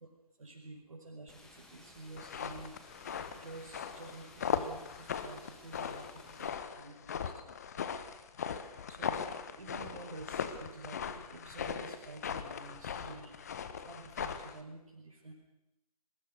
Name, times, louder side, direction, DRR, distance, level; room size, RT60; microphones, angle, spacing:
voice 1, 0.4-2.7 3.3-7.5 8.9-9.2 9.6-13.6 13.8-15.3, right 2 dB, 55° right, -2 dB, 5.2 m, -50 dB
sound 1, 1.3-6.5, left 2 dB, 5° left, 1.7 m, -57 dB
sound 2, 2.2-14.6, left 7 dB, 25° left, 1.3 m, -39 dB
25.5 x 23.0 x 6.7 m, 0.88 s
figure-of-eight pair, 150°, 20 cm